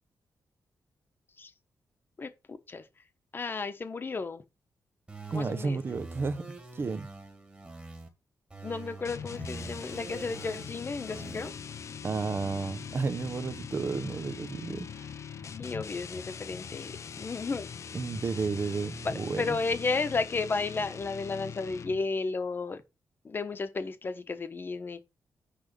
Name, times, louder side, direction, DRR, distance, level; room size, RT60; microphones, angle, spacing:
voice 1, 2.2-2.8 3.3-4.4 5.3-5.8 8.6-11.5 15.6-17.7 19.0-22.8 23.2-25.0, left 4 dB, 35° left, 1.1 m, -33 dB
sound 1, 5.1-8.1 8.5-11.5, right 3 dB, 20° right, 2.3 m, -45 dB
voice 2, 5.3-6.5 6.7-7.1 12.0-15.1 17.9-19.6, right 4 dB, 35° right, 0.9 m, -32 dB
sound 2, 9.1-22.1, left 7 dB, 50° left, 0.7 m, -42 dB
10.0 x 3.5 x 5.3 m
wide cardioid pair, 135°, 6 cm